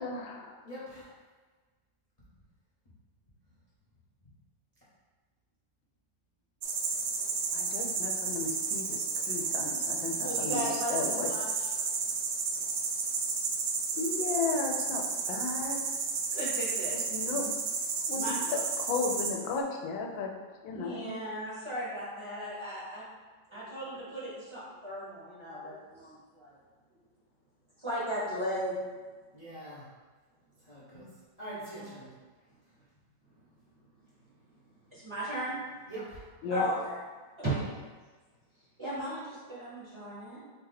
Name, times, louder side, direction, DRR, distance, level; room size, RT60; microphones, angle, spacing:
voice 1, 0.0-0.6 7.5-11.3 14.0-15.8 16.4-16.5 16.9-17.5 18.1-20.3 20.6-21.2 36.4-36.7, left 4 dB, 90° left, 1 dB, 1.4 m, -34 dB
voice 2, 0.6-1.1 3.5-3.6 29.3-29.9 30.6-32.1 32.4-32.5 32.9-33.0 35.9-36.4, right 1 dB, 25° left, -11 dB, 0.9 m, -44 dB
sound 1, 6.6-19.6, right 5 dB, 70° right, 1.2 m, -32 dB
voice 3, 10.2-11.7 16.3-16.9 17.2-17.4 18.1-18.6 20.7-23.0 23.5-26.5 27.8-28.7 31.8-31.9 34.9-35.6 36.5-37.0 37.4-37.6 38.8-40.4, right 1 dB, 20° right, -9 dB, 1.1 m, -36 dB
4.6 x 2.8 x 3.9 m, 1.4 s
omnidirectional pair, 2.0 m